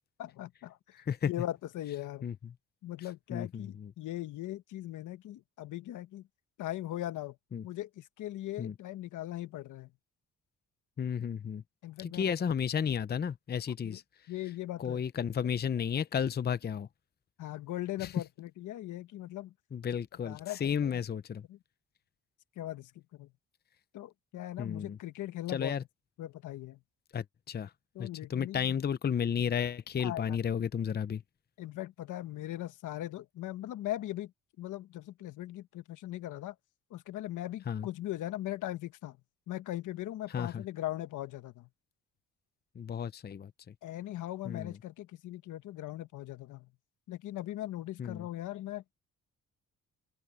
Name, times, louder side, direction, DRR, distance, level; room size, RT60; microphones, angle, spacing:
voice 1, 0.2-2.3 2.8-6.2 6.6-7.4 7.6-9.9 11.8-12.4 13.8-14.0 14.3-15.0 17.4-19.5 20.2-21.0 21.5-21.6 22.6-23.3 23.9-25.7 26.2-26.8 27.9-28.7 30.0-30.4 31.6-34.3 34.6-36.5 36.9-39.2 39.5-41.7 43.8-46.7 47.1-48.9, left 14 dB, 80° left, 1.4 m, -39 dB
voice 2, 3.3-3.9 7.5-7.6 8.6-8.7 11.0-11.6 12.0-14.0 14.8-16.9 18.0-18.1 19.7-21.4 24.6-25.0 25.5-25.8 27.1-27.7 28.0-31.2 37.7-37.9 40.3-40.6 42.8-43.5 44.4-44.8 48.0-48.3, left 7 dB, 35° left, 0.7 m, -33 dB
open air
cardioid pair, 90°, 30 cm